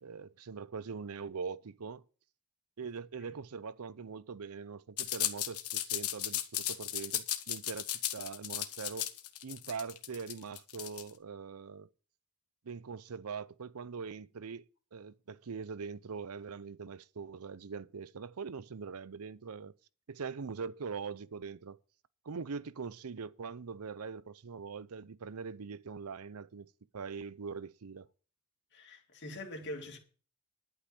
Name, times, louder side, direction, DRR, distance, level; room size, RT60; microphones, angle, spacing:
voice 1, 0.0-2.0 2.8-9.1 9.4-11.9 12.6-14.6 14.9-19.7 20.1-21.8 22.2-26.7 26.9-28.1, right 5 dB, 80° right, 0.6 m, -42 dB
sound 1, 5.0-11.1, left 12 dB, 85° left, 1.2 m, -35 dB
voice 2, 28.7-30.0, left 1 dB, 50° left, 2.4 m, -44 dB
11.5 x 5.7 x 8.2 m
head